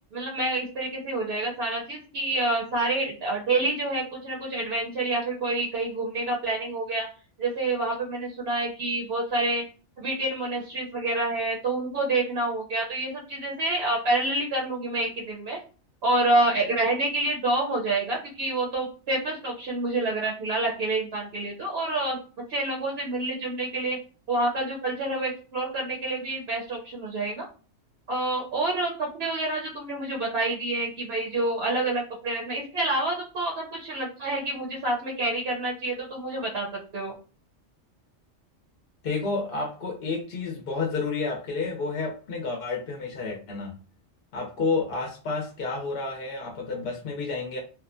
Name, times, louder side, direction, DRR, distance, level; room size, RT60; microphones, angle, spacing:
voice 1, 0.1-7.1 7.4-9.6 10.0-15.6 16.0-22.2 22.5-24.0 24.3-27.5 28.1-36.7 36.9-37.1, right 2 dB, 65° right, -2 dB, 0.8 m, -28 dB
voice 2, 39.0-43.7 44.3-47.6, left 4 dB, 60° left, 0 dB, 0.7 m, -30 dB
2.7 x 2.1 x 2.4 m, 0.37 s
omnidirectional pair, 1.2 m